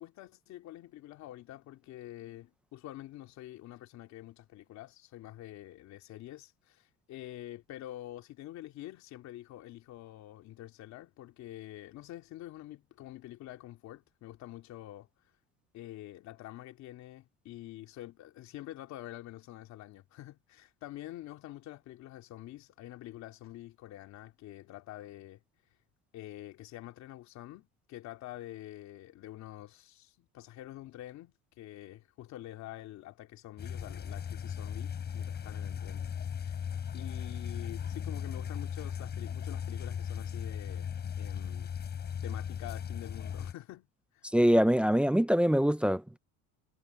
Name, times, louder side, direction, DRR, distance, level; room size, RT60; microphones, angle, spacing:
voice 1, 0.0-15.1 15.7-25.4 26.1-36.1 36.4-36.6 36.9-40.9 41.2-41.7 42.2-43.9 44.1-44.2, left 14 dB, 55° left, 3.2 m, -47 dB
sound 1, 33.6-43.5, left 8 dB, 30° left, 7.0 m, -37 dB
voice 2, 44.3-46.2, equal, 5° right, 0.4 m, -24 dB
cardioid pair, 160°, 33 cm